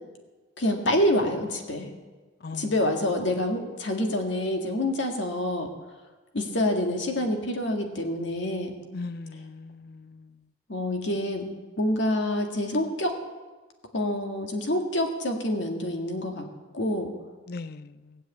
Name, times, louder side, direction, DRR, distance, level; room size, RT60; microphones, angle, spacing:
voice 1, 0.6-1.9 2.5-5.7 6.3-8.7 10.7-11.4 11.8-13.2 13.9-16.5 16.7-17.1, left 1 dB, 80° left, 2.0 m, -27 dB
voice 2, 8.9-10.3 17.5-18.2, left 3 dB, 55° left, 0.5 m, -39 dB
18.0 x 7.9 x 8.3 m
head